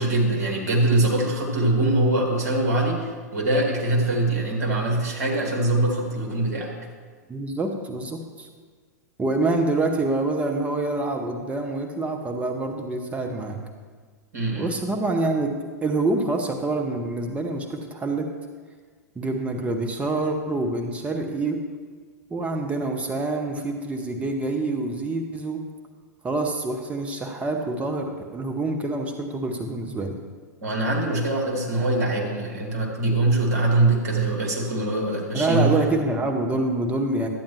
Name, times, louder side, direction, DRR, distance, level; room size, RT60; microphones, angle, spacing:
voice 1, 0.0-6.7 14.3-14.8 30.6-35.7, right 2 dB, 65° right, -1 dB, 2.1 m, -23 dB
voice 2, 7.3-8.5 9.2-13.6 14.5-15.5 15.8-18.3 19.2-21.6 22.3-25.6 26.2-30.2 35.3-37.3, right 2 dB, 15° right, 4 dB, 0.8 m, -26 dB
12.0 x 8.6 x 3.1 m, 1.5 s
figure-of-eight pair, 95°, 9 cm